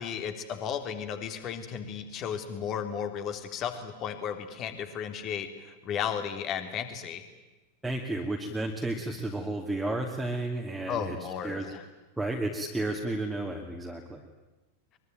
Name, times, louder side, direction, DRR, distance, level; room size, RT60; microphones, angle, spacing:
voice 1, 0.0-7.2 10.9-11.8, left 8 dB, 35° left, 8 dB, 3.4 m, -34 dB
voice 2, 7.8-11.2 11.4-11.6 12.2-14.2, right 2 dB, 5° right, 0 dB, 2.7 m, -32 dB
24.0 x 23.5 x 9.3 m, 1.1 s
figure-of-eight pair, 90°, 0 cm